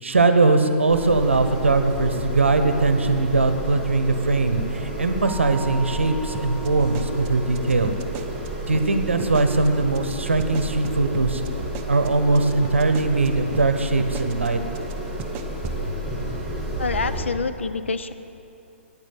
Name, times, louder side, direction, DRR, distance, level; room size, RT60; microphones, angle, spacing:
voice 1, 0.0-7.9 8.6-11.4 11.9-14.6, right 3 dB, 70° right, 8 dB, 0.8 m, -21 dB
sound 1, 0.9-17.2, equal, ahead, 3.3 m, -31 dB
Keyboard (musical), 5.2-7.7, right 2 dB, 25° left, 2.7 m, -40 dB
sound 2, 6.3-8.5 8.7-8.9 9.2-9.7 9.9-10.1 10.4-13.3 13.5-13.7 14.0-14.5 14.7-14.9 15.2-15.8, right 7 dB, 30° right, 0.6 m, -37 dB
voice 2, 16.8-18.1, left 4 dB, 65° left, 11 dB, 0.5 m, -27 dB
9.6 x 9.3 x 7.5 m, 2.8 s
figure-of-eight pair, 120°, 7 cm